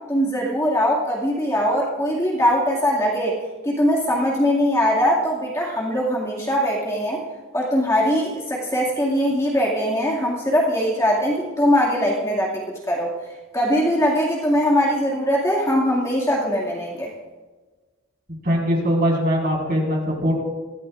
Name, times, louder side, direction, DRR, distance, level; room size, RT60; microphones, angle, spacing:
voice 1, 0.1-3.3 3.6-7.2 7.5-12.6 12.9-13.2 13.5-17.1, equal, 15° left, -3 dB, 2.1 m, -21 dB
voice 2, 18.4-20.3, equal, 45° right, -3 dB, 4.8 m, -21 dB
23.5 x 15.0 x 2.5 m, 1.3 s
head